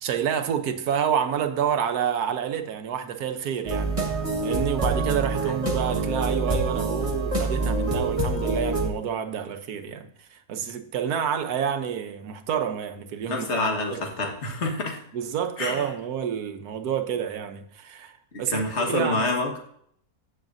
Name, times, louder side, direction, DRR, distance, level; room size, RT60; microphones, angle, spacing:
voice 1, 0.0-4.0 4.4-14.1 15.1-19.3, right 8 dB, 85° right, 1.4 m, -28 dB
sound 1, 3.6-8.9, right 2 dB, 25° right, 1.3 m, -26 dB
voice 2, 13.3-15.0 15.6-15.9 18.3-19.6, left 2 dB, 50° left, 1.9 m, -27 dB
14.5 x 6.6 x 2.6 m
omnidirectional pair, 1.6 m